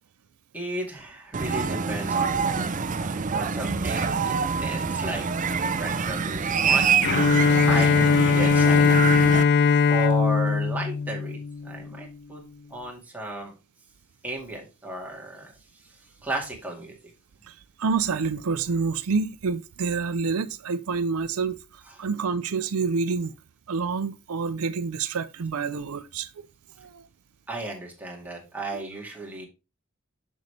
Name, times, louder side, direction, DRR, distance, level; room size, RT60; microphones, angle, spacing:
voice 1, 0.5-5.2 5.6-6.9 7.6-9.1 9.9-12.4 12.7-13.5 14.2-15.5 15.8-17.0 27.5-29.5, right 1 dB, 10° right, 2.1 m, -34 dB
sound 1, 1.3-9.4, right 5 dB, 35° right, 0.5 m, -26 dB
Bowed string instrument, 7.0-12.0, left 5 dB, 50° left, 0.4 m, -20 dB
voice 2, 17.4-23.3 23.7-26.5 26.8-27.1 28.7-28.8, right 5 dB, 85° right, 0.5 m, -28 dB
6.7 x 6.4 x 3.3 m
head